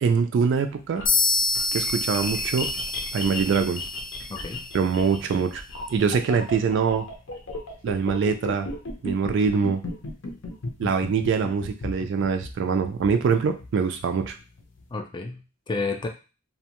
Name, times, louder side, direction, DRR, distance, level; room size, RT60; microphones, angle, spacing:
voice 1, 0.0-1.1 1.7-2.7 3.1-3.8 4.7-5.6 5.9-7.1 7.8-8.7 9.0-9.8 10.8-14.4, right 5 dB, 60° right, 7 dB, 0.3 m, -24 dB
sound 1, 0.7-14.8, left 2 dB, 65° left, 0.6 m, -35 dB
sound 2, 1.1-4.8, left 4 dB, 90° left, 0.9 m, -27 dB
voice 2, 4.3-4.6 14.9-16.1, left 3 dB, 25° left, 5 dB, 0.3 m, -31 dB
2.6 x 2.1 x 2.9 m, 0.32 s
head